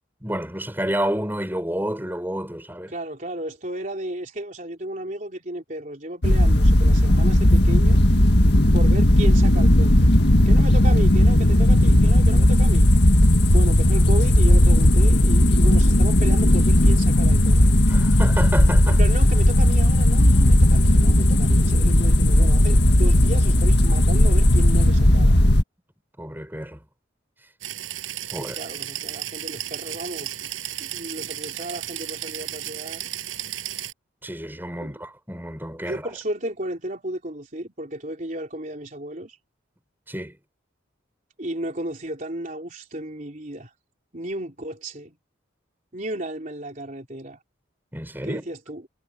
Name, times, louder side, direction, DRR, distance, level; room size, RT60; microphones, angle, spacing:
voice 1, 0.2-2.9 17.9-19.0 26.2-26.8 28.3-28.6 34.2-36.1 40.1-40.4 47.9-48.5, equal, 10° right, 6.1 m, -29 dB
voice 2, 2.9-8.0 8.7-10.1 10.5-12.9 13.5-17.7 18.9-25.4 28.4-30.5 30.8-33.1 33.4-33.5 34.8-34.9 35.8-39.4 41.4-43.7 44.1-45.2 45.9-47.4 48.2-48.9, right 1 dB, 40° right, 3.8 m, -34 dB
sound 1, 6.2-25.6, left 1 dB, 55° left, 1.9 m, -16 dB
sound 2, 27.6-33.9, right 12 dB, 90° right, 6.9 m, -34 dB
head